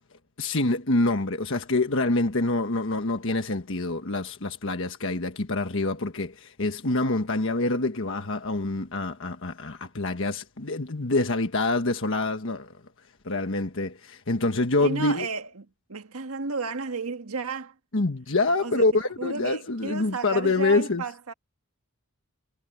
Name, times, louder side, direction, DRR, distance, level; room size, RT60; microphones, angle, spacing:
voice 1, 0.4-12.7 13.2-15.3 17.9-21.0, left 2 dB, 60° left, 1.4 m, -26 dB
voice 2, 14.8-17.7 18.6-18.8 19.2-21.3, right 4 dB, 80° right, 1.6 m, -33 dB
head